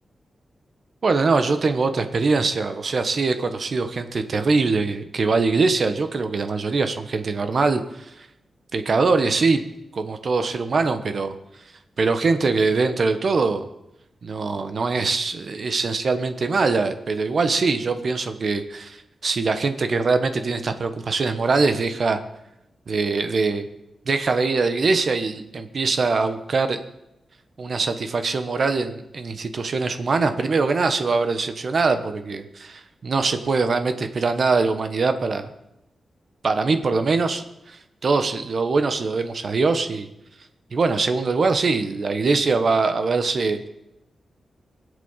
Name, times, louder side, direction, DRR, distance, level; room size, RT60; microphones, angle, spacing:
voice 1, 1.0-8.3 8.7-9.6 9.9-11.3 12.0-13.7 14.2-19.0 19.2-22.2 22.9-23.7 24.1-26.8 27.6-35.5 36.4-40.1 40.7-43.7, right 4 dB, 55° right, 8 dB, 1.2 m, -22 dB
23.0 x 8.3 x 7.4 m, 0.88 s
wide cardioid pair, 115°, 0 cm